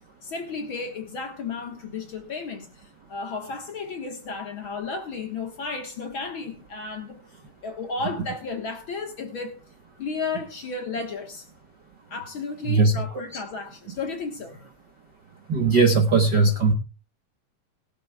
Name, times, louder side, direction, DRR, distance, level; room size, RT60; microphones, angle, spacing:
voice 1, 0.2-2.7 3.1-7.2 7.6-9.6 10.0-11.4 12.1-14.5, left 4 dB, 50° left, 1.8 m, -33 dB
voice 2, 12.7-13.1 15.5-16.7, right 3 dB, 55° right, 1.2 m, -19 dB
19.5 x 12.5 x 2.3 m
omnidirectional pair, 3.5 m